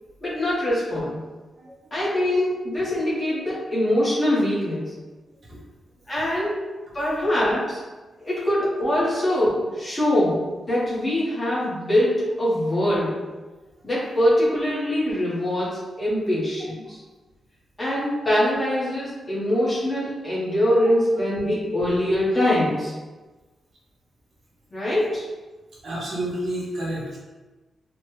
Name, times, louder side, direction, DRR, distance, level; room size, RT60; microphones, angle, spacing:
voice 1, 0.2-1.2 1.9-4.9 6.1-6.6 6.9-7.8 8.2-13.2 13.8-17.0 17.8-22.9 24.7-25.3, left 1 dB, 20° left, -9 dB, 1.0 m, -23 dB
voice 2, 25.8-27.2, right 1 dB, 50° right, -5 dB, 0.7 m, -30 dB
3.1 x 2.1 x 3.0 m, 1.2 s
wide cardioid pair, 175°, 0 cm